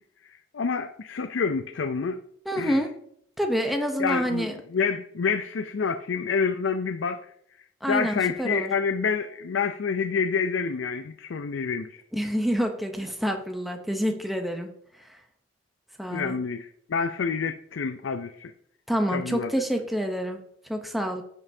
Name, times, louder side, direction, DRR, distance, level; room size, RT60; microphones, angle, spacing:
voice 1, 0.5-2.2 2.6-2.8 4.0-7.3 7.9-12.0 16.1-18.5 19.1-19.5, left 5 dB, 85° left, 0.5 m, -28 dB
voice 2, 2.5-2.9 3.4-4.5 7.8-8.7 12.1-14.7 15.0-15.2 16.0-16.4 18.9-20.4 20.7-21.2, equal, ahead, 0.7 m, -27 dB
15.5 x 5.4 x 2.7 m
head